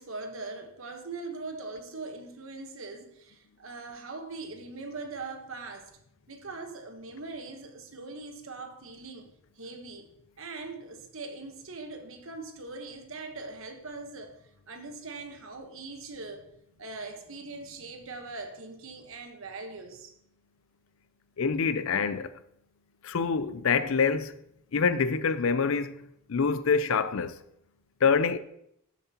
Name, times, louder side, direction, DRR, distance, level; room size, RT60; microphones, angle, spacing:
voice 1, 0.0-5.9 6.3-9.3 9.6-10.1 10.4-14.4 14.7-20.1, right 3 dB, 60° right, 1.2 m, -41 dB
voice 2, 21.4-22.3 23.0-24.4 24.7-26.0 26.3-27.4 28.0-28.4, left 5 dB, 60° left, 0.5 m, -26 dB
12.5 x 7.2 x 2.9 m
head